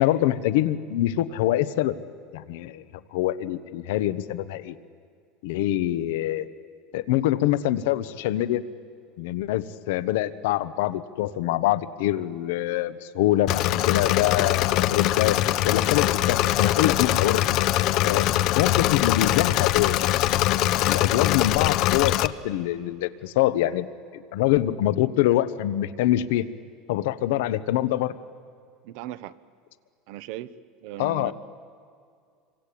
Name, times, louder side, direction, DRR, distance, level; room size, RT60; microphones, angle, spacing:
voice 1, 0.0-2.0 2.3-2.8 3.1-4.8 5.4-6.5 6.9-8.6 9.2-15.4 15.6-17.4 18.0-18.3 18.5-23.9 24.3-26.5 26.9-28.2 31.0-31.3, left 14 dB, 80° left, 14 dB, 1.0 m, -25 dB
Engine / Mechanisms, 13.5-22.3, left 14 dB, 50° left, 0.7 m, -22 dB
voice 2, 28.8-29.4 30.1-30.5 30.8-31.3, right 14 dB, 65° right, 15 dB, 0.9 m, -37 dB
27.5 x 24.5 x 8.6 m, 2.2 s
supercardioid pair, 155°, 0 cm